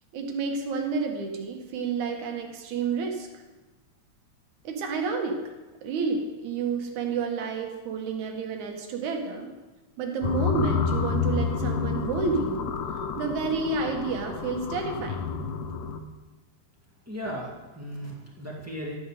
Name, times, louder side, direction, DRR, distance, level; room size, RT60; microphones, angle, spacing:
voice 1, 0.1-3.3 4.6-5.4 5.8-9.5 10.0-12.7 13.2-15.3 15.7-15.8, right 4 dB, 75° right, 3 dB, 2.6 m, -30 dB
sound 1, 10.2-16.0, left 5 dB, 85° left, 2.3 m, -29 dB
voice 2, 17.0-19.0, equal, 5° right, -4 dB, 1.3 m, -36 dB
12.0 x 8.4 x 4.9 m, 1.2 s
omnidirectional pair, 3.5 m